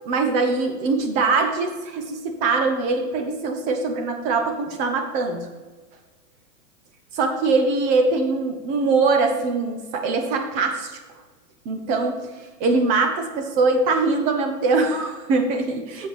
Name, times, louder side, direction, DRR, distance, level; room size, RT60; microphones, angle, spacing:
voice 1, 0.1-5.5 7.1-11.0 11.6-16.1, right 3 dB, 15° right, 5 dB, 0.5 m, -22 dB
7.7 x 5.0 x 6.4 m, 1.3 s
hypercardioid pair, 140°, 49 cm